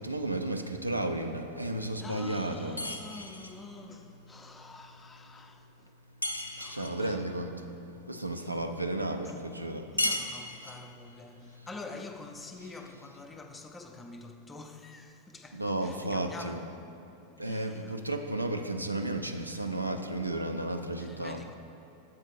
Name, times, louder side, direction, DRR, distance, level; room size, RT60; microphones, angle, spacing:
voice 1, 0.0-2.8 6.7-9.9 11.6-11.7 15.5-16.6 17.4-21.4, right 1 dB, 85° right, 0.4 m, -33 dB
voice 2, 2.0-5.9 6.5-7.2 8.4-8.7 9.2-9.4 9.9-16.6 17.3-18.0 21.0-21.5, left 3 dB, 15° left, 0.4 m, -47 dB
sound 1, 2.8-3.6 6.2-7.0 10.0-10.9, left 2 dB, 85° left, 0.4 m, -34 dB
7.4 x 4.3 x 4.4 m
figure-of-eight pair, 90°, 0 cm